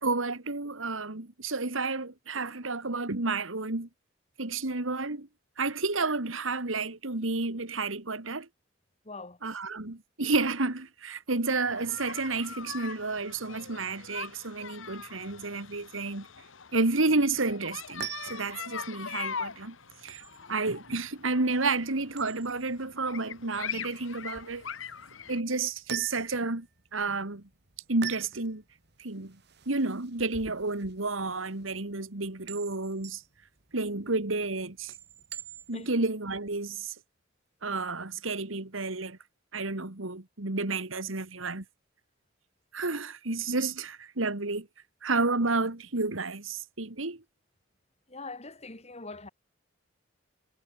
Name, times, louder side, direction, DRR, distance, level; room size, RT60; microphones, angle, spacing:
voice 1, 0.0-3.9 4.4-5.3 5.6-8.5 9.4-16.3 16.7-19.8 20.0-20.2 20.5-24.6 25.3-26.7 26.9-27.4 27.9-28.6 29.0-29.4 29.7-33.2 33.7-34.9 35.7-36.9 37.6-39.2 39.5-41.6 42.7-44.7 45.0-47.2, right 3 dB, 80° right, 2.2 m, -31 dB
voice 2, 9.0-9.4 35.7-35.9 48.1-49.3, left 3 dB, 35° left, 3.6 m, -42 dB
sound 1, 11.7-25.4, left 7 dB, 75° left, 1.5 m, -42 dB
sound 2, 17.7-36.0, right 9 dB, 55° right, 2.9 m, -46 dB
head